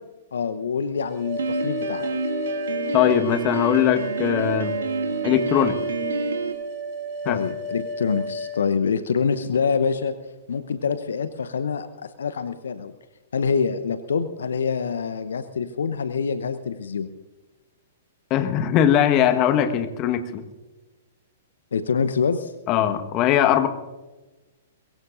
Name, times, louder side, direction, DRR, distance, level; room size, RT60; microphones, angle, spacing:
voice 1, 0.3-2.0 7.3-10.1 10.5-12.9 13.3-17.1 21.7-22.5, left 6 dB, 65° left, 11 dB, 0.9 m, -25 dB
sound 1, 1.0-8.6, left 1 dB, 35° right, 7.5 m, -31 dB
Piano, 1.4-6.5, right 4 dB, 65° right, 2.3 m, -28 dB
voice 2, 2.9-4.7 5.2-5.8 7.2-7.4 18.3-20.4 22.7-23.7, left 10 dB, 30° left, 9 dB, 1.4 m, -20 dB
23.0 x 22.0 x 2.6 m, 1.2 s
figure-of-eight pair, 110°, 0 cm